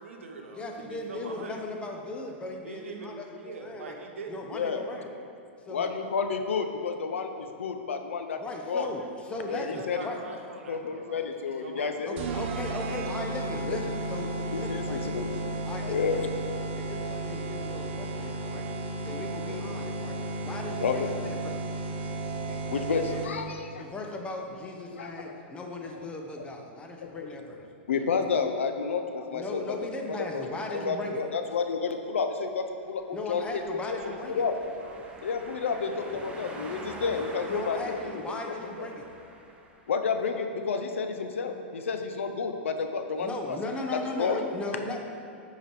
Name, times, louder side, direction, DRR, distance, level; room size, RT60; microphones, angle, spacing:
voice 1, 0.0-1.6 2.6-4.4 9.5-12.0 33.5-35.1, right 4 dB, 85° right, 2 dB, 1.0 m, -43 dB
voice 2, 0.5-4.0 4.3-5.1 5.6-5.9 8.4-10.2 12.1-15.2 15.6-16.3 16.7-18.7 19.0-21.6 23.7-27.6 29.3-31.2 33.1-34.4 37.5-39.1 43.2-45.0, left 2 dB, 15° left, 2 dB, 0.9 m, -38 dB
voice 3, 4.5-4.9 5.7-8.4 8.7-8.9 9.5-10.0 10.7-12.2 13.7-13.8 14.5-15.4 15.8-16.2 20.8-21.1 22.5-23.8 24.9-25.1 27.0-29.6 30.1-30.4 30.7-33.6 33.9-34.0 34.4-34.5 35.2-38.0 38.3-38.4 38.8-38.9 39.9-43.6 44.2-44.4, left 5 dB, 90° left, 6 dB, 0.7 m, -30 dB
sound 1, 12.2-23.6, right 2 dB, 60° right, 0.8 m, -33 dB
sound 2, 33.3-40.1, right 2 dB, 15° right, 0.8 m, -45 dB
7.8 x 4.9 x 4.6 m, 2.6 s
hypercardioid pair, 125°, 7 cm